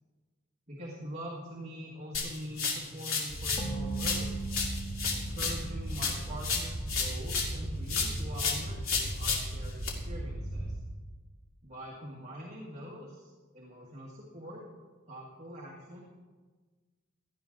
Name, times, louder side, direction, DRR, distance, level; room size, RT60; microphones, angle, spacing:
voice 1, 0.7-4.3 5.1-10.8 11.6-14.6 15.1-16.0, equal, 35° right, -3 dB, 2.0 m, -44 dB
sound 1, 2.1-3.7 4.0-7.6 7.9-9.9, left 5 dB, 85° left, 2.6 m, -33 dB
sound 2, 3.3-10.7, right 1 dB, 65° left, 3.9 m, -37 dB
sound 3, 3.6-7.1, right 4 dB, 25° left, 2.7 m, -41 dB
17.5 x 12.5 x 3.9 m, 1.4 s
head